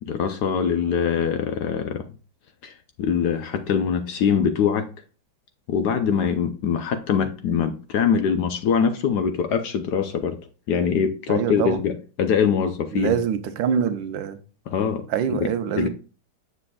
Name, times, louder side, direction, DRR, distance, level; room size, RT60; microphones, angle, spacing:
voice 1, 0.0-2.0 2.6-4.9 5.7-10.4 10.7-13.1 14.7-15.5 15.8-15.9, left 7 dB, 70° left, 1.0 m, -23 dB
voice 2, 11.3-11.8 12.9-14.4 15.1-15.9, right 8 dB, 80° right, 1.3 m, -24 dB
7.0 x 6.7 x 2.3 m
omnidirectional pair, 2.2 m